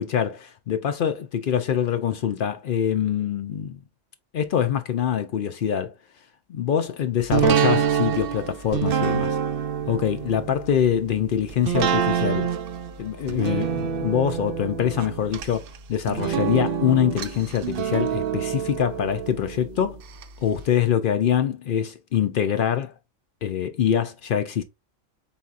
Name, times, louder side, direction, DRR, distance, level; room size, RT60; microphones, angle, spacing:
voice 1, 0.0-3.8 4.3-5.9 6.5-9.4 9.9-12.5 13.0-15.6 15.9-20.0 20.4-22.9 23.4-24.6, left 9 dB, 65° left, 0.5 m, -24 dB
sound 1, 7.3-20.2 20.6-20.7, right 8 dB, 65° right, 0.6 m, -26 dB
4.2 x 4.0 x 2.4 m
omnidirectional pair, 1.4 m